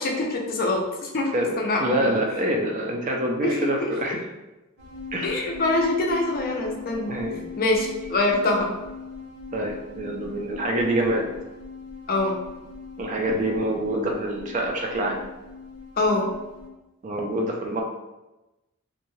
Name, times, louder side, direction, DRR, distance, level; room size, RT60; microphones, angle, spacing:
voice 1, 0.0-2.1 3.4-3.6 5.2-7.2 7.6-8.7 12.1-12.4 16.0-16.3, left 2 dB, 40° left, 0 dB, 0.4 m, -24 dB
voice 2, 1.8-4.2 5.1-5.4 7.1-7.5 9.5-11.2 13.0-15.2 17.0-17.8, right 1 dB, 35° right, 1 dB, 0.4 m, -26 dB
sound 1, 4.8-16.7, left 4 dB, 65° right, 0.8 m, -40 dB
2.6 x 2.2 x 3.1 m, 1.0 s
head